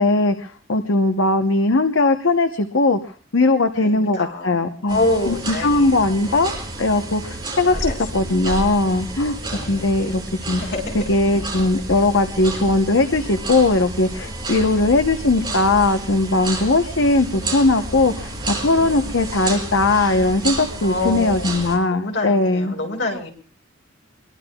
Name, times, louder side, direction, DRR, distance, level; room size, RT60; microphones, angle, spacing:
voice 1, 0.0-3.0 3.3-6.5 6.8-9.4 9.7-10.2 10.5-10.6 10.9-22.8, left 2 dB, 80° left, 7 dB, 0.9 m, -19 dB
voice 2, 3.8-4.5 4.9-6.4 7.6-8.2 9.4-9.9 10.6-11.0 20.8-21.5 21.9-23.3, left 2 dB, 65° left, 1 dB, 5.6 m, -27 dB
sound 1, 4.9-21.8, right 2 dB, 25° right, 6.7 m, -30 dB
26.0 x 22.5 x 2.3 m, 0.41 s
head